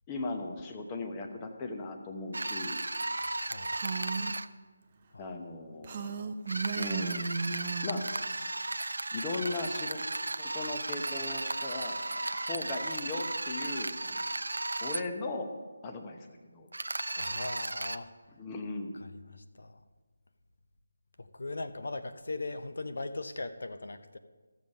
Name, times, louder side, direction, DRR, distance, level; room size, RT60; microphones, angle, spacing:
voice 1, 0.1-2.8 5.2-6.3 6.7-7.2 7.8-8.1 9.1-10.0 10.4-14.2 14.8-15.6 15.8-16.2 16.5-16.7 18.4-18.9, left 3 dB, 15° left, 3 dB, 0.8 m, -38 dB
sound 1, 2.3-4.5 6.5-15.0 16.7-18.0, right 2 dB, 85° right, 0.5 m, -35 dB
voice 2, 3.1-3.7 5.1-5.4 17.1-18.1 18.9-19.8 21.2-24.2, left 2 dB, 70° left, 10 dB, 0.7 m, -40 dB
Female speech woman speaking, 3.7-4.4 5.8-8.1, right 5 dB, 30° right, 0.6 m, -35 dB
14.5 x 7.2 x 5.3 m, 1.4 s
figure-of-eight pair, 165°, 0 cm